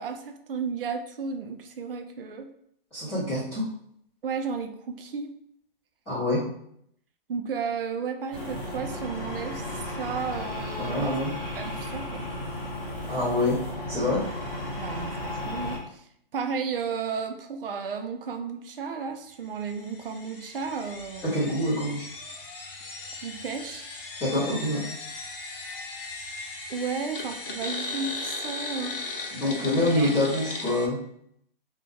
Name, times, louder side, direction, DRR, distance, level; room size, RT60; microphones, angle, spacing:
voice 1, 0.0-2.5 4.2-5.3 7.3-11.2 11.5-12.3 14.8-21.6 23.2-23.9 26.7-29.0 30.0-30.1, right 5 dB, 70° right, 6 dB, 0.5 m, -33 dB
voice 2, 2.9-3.6 6.1-6.4 10.8-11.3 13.1-13.6 13.9-14.2 21.3-22.0 24.2-24.8 29.3-31.0, left 1 dB, 5° left, -14 dB, 0.6 m, -26 dB
sound 1, 8.3-15.8, left 1 dB, 25° left, 0.9 m, -34 dB
sound 2, 19.7-30.9, left 3 dB, 70° left, 0.7 m, -37 dB
2.3 x 2.1 x 3.1 m, 0.69 s
hypercardioid pair, 170°, 29 cm